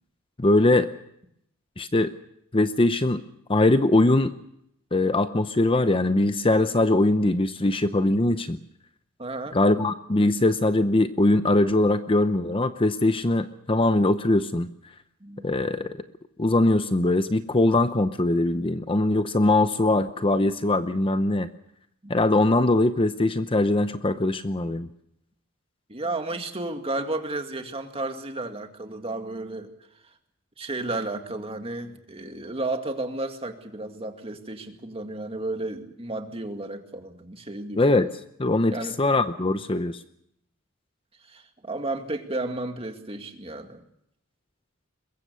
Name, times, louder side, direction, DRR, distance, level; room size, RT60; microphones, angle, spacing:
voice 1, 0.4-0.9 1.8-2.1 2.5-3.2 3.5-4.3 4.9-8.6 9.5-14.7 15.4-16.0 16.4-21.5 22.1-24.9 37.8-38.1 38.4-40.0, left 2 dB, 25° left, 10 dB, 0.8 m, -21 dB
voice 2, 9.2-9.6 15.2-15.5 22.0-22.1 25.9-29.7 30.6-37.8 38.7-39.0 41.3-43.8, right 2 dB, 30° right, 5 dB, 2.1 m, -33 dB
22.5 x 22.0 x 6.9 m, 0.76 s
head